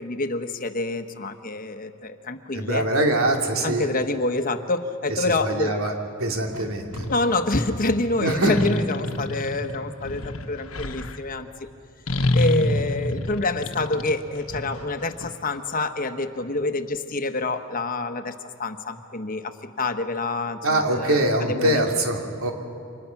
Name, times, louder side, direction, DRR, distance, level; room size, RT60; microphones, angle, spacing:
voice 1, 0.0-2.9 3.6-5.8 7.1-11.7 12.3-18.3 18.6-21.9, left 2 dB, 40° left, 8 dB, 1.2 m, -27 dB
voice 2, 2.5-3.9 5.1-5.9 6.2-7.1 8.2-8.6 20.6-22.5, right 1 dB, 80° right, 2 dB, 3.0 m, -23 dB
sound 1, 6.5-7.2 8.4-11.2 12.1-15.3, left 1 dB, 75° left, 1.3 m, -27 dB
29.5 x 25.5 x 5.9 m, 2.5 s
head